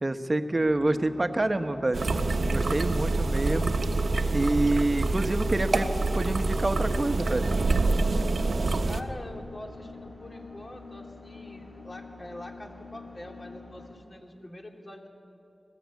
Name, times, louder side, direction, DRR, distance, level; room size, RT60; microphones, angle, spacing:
voice 1, 0.0-2.1 2.4-3.7 4.3-5.9 6.1-7.5, right 2 dB, 35° right, 8 dB, 1.1 m, -27 dB
sound 1, 0.5-14.0, left 3 dB, 55° left, 6.5 m, -47 dB
sound 2, 1.9-9.0, right 3 dB, 80° right, 1.0 m, -26 dB
voice 2, 8.8-15.1, left 1 dB, 35° left, 2 dB, 2.5 m, -44 dB
20.5 x 16.0 x 8.3 m, 2.9 s
wide cardioid pair, 75°, 0 cm